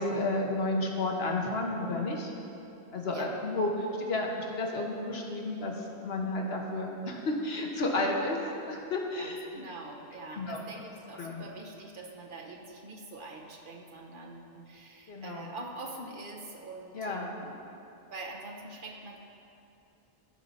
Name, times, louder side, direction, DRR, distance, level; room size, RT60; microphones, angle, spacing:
voice 1, 0.0-2.3 2.9-8.4 8.6-9.4 10.4-10.6 11.2-11.4 15.1-15.5 16.9-17.3, left 2 dB, 75° left, 0 dB, 1.3 m, -32 dB
voice 2, 9.2-17.6 17.8-19.2, right 2 dB, 55° right, 1 dB, 1.1 m, -44 dB
14.0 x 5.5 x 4.1 m, 2.8 s
omnidirectional pair, 1.0 m